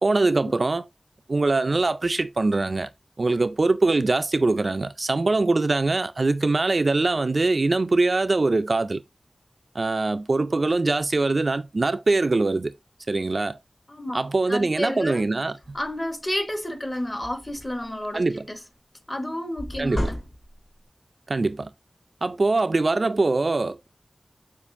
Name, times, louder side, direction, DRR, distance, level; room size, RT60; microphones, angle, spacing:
voice 1, 0.0-0.9 1.3-2.9 3.2-9.0 9.7-12.7 13.1-13.6 14.1-15.6 18.1-18.5 19.8-20.1 21.3-21.7 22.2-23.9, right 3 dB, 60° right, 0.3 m, -23 dB
voice 2, 13.9-14.2 14.5-15.2 15.7-18.6 19.1-20.2, left 1 dB, 25° left, 1.0 m, -31 dB
sound 1, 15.6-15.9 16.4-16.5 16.8-17.9 19.6-20.8, left 1 dB, 60° left, 2.0 m, -33 dB
7.0 x 2.5 x 2.5 m
wide cardioid pair, 55°, 0 cm